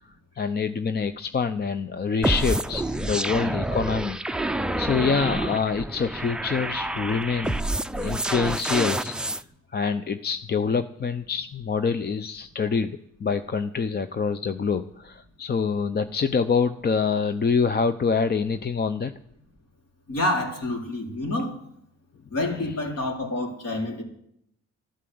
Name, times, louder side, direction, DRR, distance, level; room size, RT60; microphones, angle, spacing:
voice 1, 0.4-4.2 4.8-7.7 8.0-9.4 9.7-19.1, left 5 dB, 35° left, 10 dB, 0.7 m, -26 dB
sound 1, 2.2-9.4, right 1 dB, 5° right, 0.5 m, -28 dB
voice 2, 20.1-21.5 22.3-24.0, left 1 dB, 55° left, 0 dB, 4.3 m, -28 dB
13.0 x 12.5 x 7.9 m, 0.74 s
cardioid pair, 90°, 30 cm